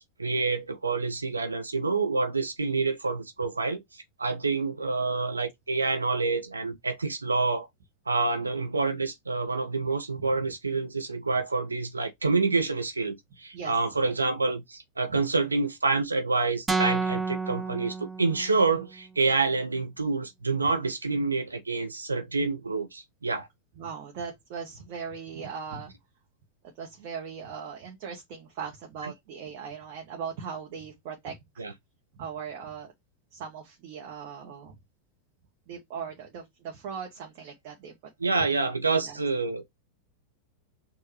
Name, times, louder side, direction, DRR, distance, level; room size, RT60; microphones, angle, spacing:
voice 1, 0.2-3.8 4.2-7.7 8.1-23.5 29.0-29.1 31.6-31.7 38.2-39.7, right 3 dB, 80° right, 0.9 m, -27 dB
sound 1, 16.7-18.8, right 4 dB, 15° right, 0.6 m, -30 dB
voice 2, 23.8-25.9 26.8-31.6 32.1-32.9 33.3-34.8 35.7-37.9 38.3-38.7 39.0-39.2, right 6 dB, 45° right, 1.2 m, -39 dB
6.5 x 2.6 x 3.1 m
figure-of-eight pair, 90°, 0 cm